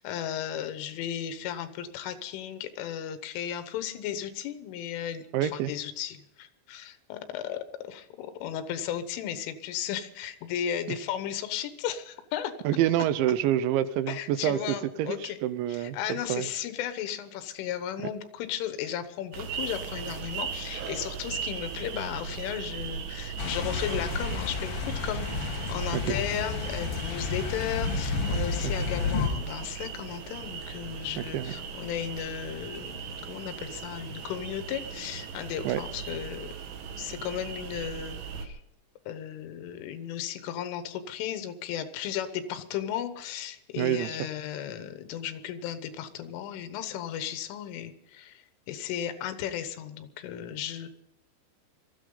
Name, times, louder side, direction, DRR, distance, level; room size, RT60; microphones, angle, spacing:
voice 1, 0.0-12.5 14.1-15.4 15.7-36.5 37.0-38.6 39.1-50.9, left 10 dB, 90° left, 10 dB, 3.7 m, -35 dB
voice 2, 5.3-5.7 12.6-16.5 18.0-18.1 25.9-26.2 28.6-28.7 31.3-31.5 35.6-35.8 43.8-44.2, right 12 dB, 80° right, 13 dB, 2.9 m, -27 dB
sound 1, 19.3-38.5, right 6 dB, 60° right, 2.8 m, -38 dB
sound 2, 23.4-29.3, left 4 dB, 65° left, 1.4 m, -31 dB
22.5 x 14.0 x 3.9 m, 0.83 s
omnidirectional pair, 5.5 m